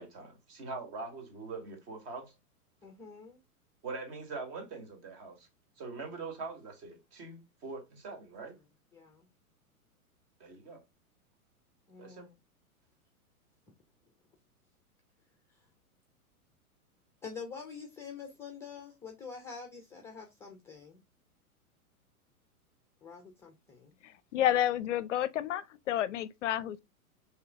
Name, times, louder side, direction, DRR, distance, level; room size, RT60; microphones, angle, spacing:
voice 1, 0.0-2.3 3.8-5.5 5.8-8.6 10.4-10.8 12.0-12.3, right 4 dB, 40° right, 1.8 m, -43 dB
voice 2, 2.8-3.4 8.4-8.5 8.9-9.3 11.9-12.4 17.2-21.0 23.0-24.0, left 5 dB, 5° left, 0.4 m, -46 dB
voice 3, 24.0-26.8, left 11 dB, 55° left, 0.5 m, -30 dB
4.6 x 3.4 x 3.4 m
hypercardioid pair, 110°, 44 cm